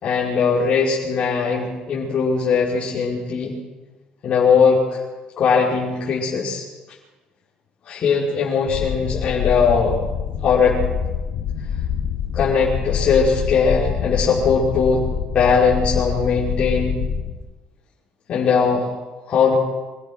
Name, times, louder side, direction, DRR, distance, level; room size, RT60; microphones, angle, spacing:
voice 1, 0.0-3.5 4.2-5.0 5.4-6.6 7.9-9.9 10.4-10.8 12.3-15.0 15.3-17.0 18.3-18.9 19.3-19.5, left 5 dB, 45° left, -8 dB, 5.4 m, -19 dB
sound 1, 8.7-17.3, left 7 dB, 85° left, 3.4 m, -26 dB
26.0 x 17.0 x 6.3 m, 1.2 s
cardioid pair, 125°, 3 cm